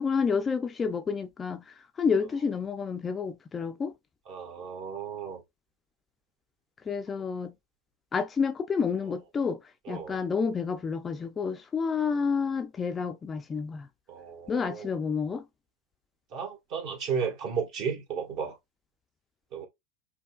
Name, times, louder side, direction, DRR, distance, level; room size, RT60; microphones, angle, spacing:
voice 1, 0.0-3.9 6.8-7.5 8.1-9.6 9.9-13.9 14.5-15.5, left 5 dB, 25° left, 0.5 m, -29 dB
voice 2, 4.3-5.4 9.8-10.2 14.1-14.9 16.3-18.5 19.5-19.7, right 6 dB, 45° right, 1.5 m, -34 dB
5.4 x 2.3 x 2.3 m
hypercardioid pair, 90°, 0 cm